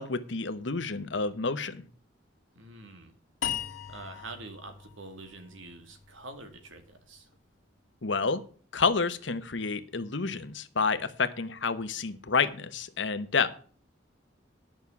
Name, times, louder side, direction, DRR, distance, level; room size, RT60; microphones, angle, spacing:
voice 1, 0.0-1.8 8.0-8.4 8.7-13.5, left 4 dB, 70° left, 12 dB, 1.0 m, -29 dB
voice 2, 2.5-3.2 3.9-7.3, right 2 dB, 85° right, 7 dB, 2.2 m, -46 dB
sound 1, 3.4-6.6, left 10 dB, 90° left, 1.6 m, -38 dB
10.5 x 6.3 x 7.1 m, 0.43 s
head